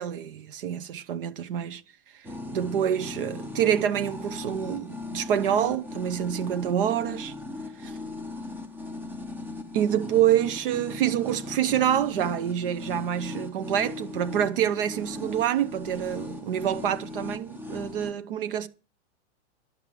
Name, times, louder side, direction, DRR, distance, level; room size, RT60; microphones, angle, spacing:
voice 1, 0.0-1.8 2.1-2.3 2.5-7.3 7.8-8.0 9.7-18.7, right 10 dB, 50° right, 0.9 m, -27 dB
sound 1, 2.2-18.1, left 2 dB, 5° right, 0.6 m, -38 dB
11.5 x 6.5 x 7.4 m
hypercardioid pair, 155°, 35 cm